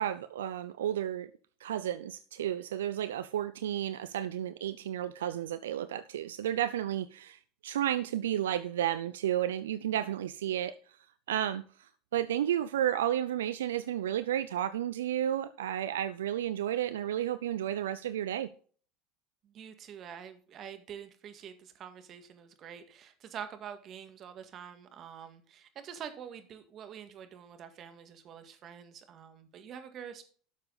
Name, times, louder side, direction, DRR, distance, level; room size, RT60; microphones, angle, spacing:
voice 1, 0.0-1.3 1.6-10.8 11.3-18.5, right 11 dB, 85° right, 0.4 m, -32 dB
voice 2, 19.4-30.2, right 8 dB, 50° right, 1.8 m, -46 dB
12.0 x 6.7 x 4.0 m
hypercardioid pair, 80°, 0 cm